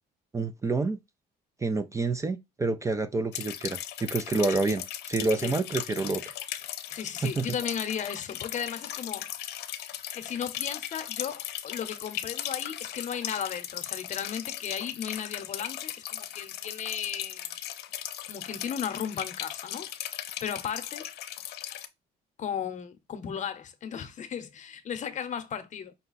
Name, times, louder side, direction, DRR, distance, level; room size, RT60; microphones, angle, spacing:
voice 1, 0.3-1.0 1.6-6.2 7.2-7.5, right 3 dB, 20° right, 0.4 m, -28 dB
sound 1, 3.3-21.9, left 12 dB, 75° left, 0.6 m, -37 dB
voice 2, 6.9-9.3 10.1-11.4 11.6-17.5 18.3-19.9 20.4-21.1 22.4-25.9, left 8 dB, 45° left, 0.8 m, -35 dB
5.4 x 2.3 x 4.0 m
cardioid pair, 110°, 17 cm